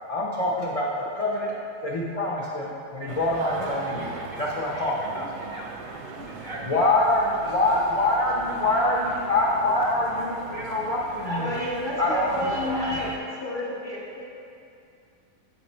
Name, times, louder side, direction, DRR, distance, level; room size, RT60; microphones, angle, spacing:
voice 1, 0.1-1.5 1.8-4.1 4.4-5.3 6.6-11.5 12.0-13.1, left 2 dB, 55° left, -5 dB, 0.3 m, -25 dB
sound 1, 3.1-13.2, right 4 dB, 90° right, 1.1 m, -39 dB
voice 2, 3.6-4.4 4.7-6.7 7.3-7.7 8.2-8.6, right 2 dB, 70° right, -2 dB, 0.5 m, -42 dB
voice 3, 11.2-13.1 13.4-14.2, left 1 dB, 20° left, -6 dB, 0.9 m, -30 dB
7.6 x 4.2 x 4.3 m, 2.6 s
omnidirectional pair, 1.6 m